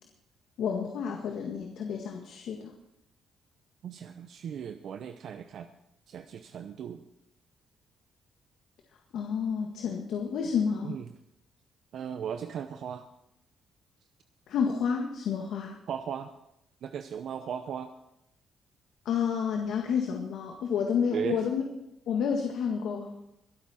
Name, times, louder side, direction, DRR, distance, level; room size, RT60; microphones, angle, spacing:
voice 1, 0.6-2.7 9.1-10.9 14.5-15.8 19.1-21.6 22.1-23.1, left 6 dB, 75° left, 2 dB, 1.7 m, -30 dB
voice 2, 3.8-5.7 6.1-7.0 10.8-11.1 11.9-13.1 15.9-16.3 16.8-17.9 21.1-21.4, right 8 dB, 65° right, 8 dB, 0.8 m, -36 dB
22.5 x 8.5 x 4.3 m, 0.82 s
cardioid pair, 90°, 0 cm